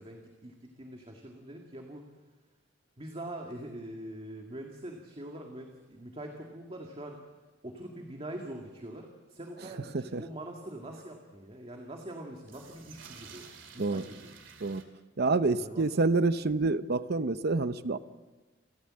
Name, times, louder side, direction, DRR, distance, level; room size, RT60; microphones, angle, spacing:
voice 1, 0.0-2.1 3.0-7.2 7.6-13.5 13.7-14.3 15.5-16.2, right 1 dB, 30° right, 1 dB, 2.1 m, -43 dB
sound 1, 5.7-5.8 6.0-6.1 6.7-6.8 12.3-14.8, right 5 dB, 75° right, 2.8 m, -51 dB
voice 2, 15.2-18.0, right 3 dB, 60° right, 13 dB, 0.7 m, -27 dB
29.5 x 14.0 x 7.7 m, 1.2 s
head